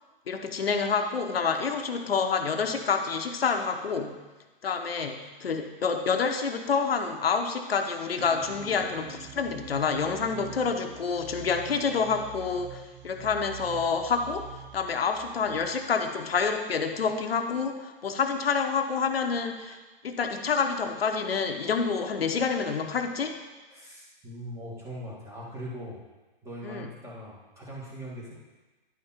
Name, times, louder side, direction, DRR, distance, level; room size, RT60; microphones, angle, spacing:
voice 1, 0.3-4.2 4.6-19.8 20.0-23.4 26.6-26.9, left 5 dB, 90° left, 5 dB, 1.0 m, -28 dB
sound 1, 8.2-16.7, right 9 dB, 25° right, 1.0 m, -46 dB
voice 2, 23.7-26.0 26.4-28.3, equal, 10° right, -5 dB, 2.1 m, -40 dB
10.5 x 5.2 x 4.4 m, 1.2 s
hypercardioid pair, 140°, 29 cm